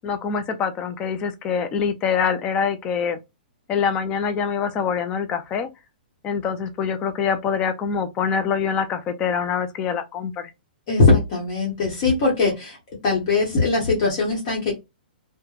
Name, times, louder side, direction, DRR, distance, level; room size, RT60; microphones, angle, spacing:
voice 1, 0.0-3.2 3.7-5.7 6.2-10.5, left 6 dB, 15° left, 0.3 m, -25 dB
voice 2, 10.9-12.8 13.0-14.8, left 3 dB, 35° left, 1.0 m, -20 dB
3.1 x 2.1 x 2.3 m
hypercardioid pair, 170°, 5 cm